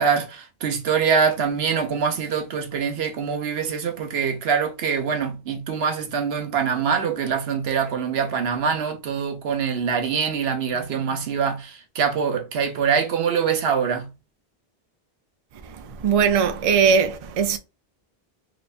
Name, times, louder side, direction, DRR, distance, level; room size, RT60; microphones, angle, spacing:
voice 1, 0.0-14.1, right 6 dB, 85° right, 1.0 m, -24 dB
voice 2, 15.8-17.6, right 6 dB, 50° right, 0.5 m, -20 dB
3.2 x 3.0 x 2.5 m
omnidirectional pair, 1.0 m